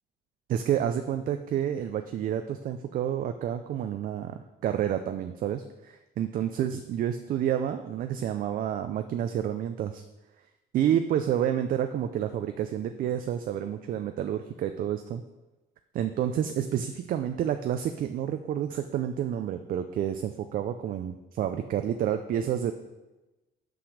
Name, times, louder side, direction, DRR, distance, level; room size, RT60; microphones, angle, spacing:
voice 1, 0.5-10.0 10.7-15.2 15.9-22.7, right 10 dB, 55° right, 7 dB, 0.5 m, -29 dB
6.0 x 5.0 x 6.4 m, 1.0 s
cardioid pair, 110°, 17 cm